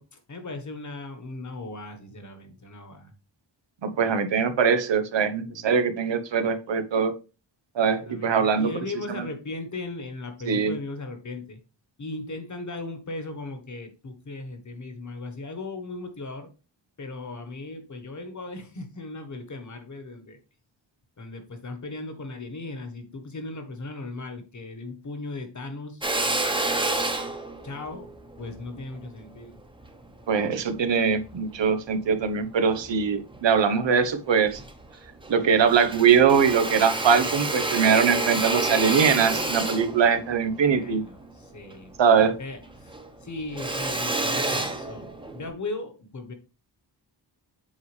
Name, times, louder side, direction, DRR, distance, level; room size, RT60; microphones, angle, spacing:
voice 1, 0.0-3.1 5.4-5.7 7.9-11.6 12.0-16.5 17.0-20.4 21.2-26.1 27.6-28.1 28.3-29.6 40.6-41.9 42.4-46.3, left 2 dB, 45° left, 1.3 m, -37 dB
voice 2, 3.8-7.1 7.7-8.7 9.1-9.2 10.5-10.7 30.3-34.6 35.3-41.0 42.0-42.4, right 6 dB, 90° right, 1.0 m, -22 dB
Drill, 26.0-30.6 31.1-32.3 32.7-33.7 34.0-34.1 34.4-35.4 35.7-42.3 42.6-45.5, right 2 dB, 10° right, 0.9 m, -29 dB
7.7 x 4.8 x 3.3 m
wide cardioid pair, 170°, 43 cm